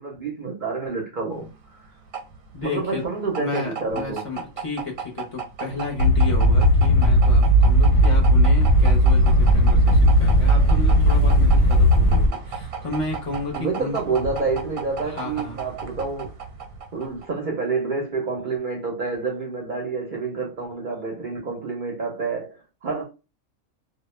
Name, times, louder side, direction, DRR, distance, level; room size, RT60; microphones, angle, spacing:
voice 1, 0.0-1.5 2.6-4.2 13.5-16.3 16.9-23.0, right 4 dB, 55° right, 0.5 m, -28 dB
sound 1, 1.4-17.4, right 5 dB, 85° right, 1.0 m, -35 dB
voice 2, 2.5-3.0 3.4-14.0 15.0-15.6, left 3 dB, 40° left, 0.5 m, -32 dB
sound 2, 6.0-12.3, equal, 65° left, 0.8 m, -16 dB
2.2 x 2.1 x 3.0 m
omnidirectional pair, 1.4 m